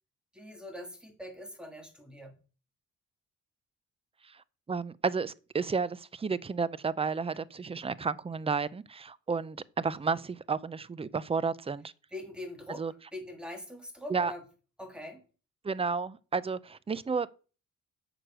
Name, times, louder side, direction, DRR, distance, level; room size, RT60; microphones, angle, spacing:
voice 1, 0.3-2.3 12.1-14.4 14.8-15.2, left 1 dB, 5° right, 3.1 m, -43 dB
voice 2, 4.7-11.9 12.8-12.9 14.1-14.3 15.6-17.3, right 5 dB, 20° right, 0.6 m, -32 dB
7.8 x 6.6 x 6.2 m
cardioid pair, 90°, 30 cm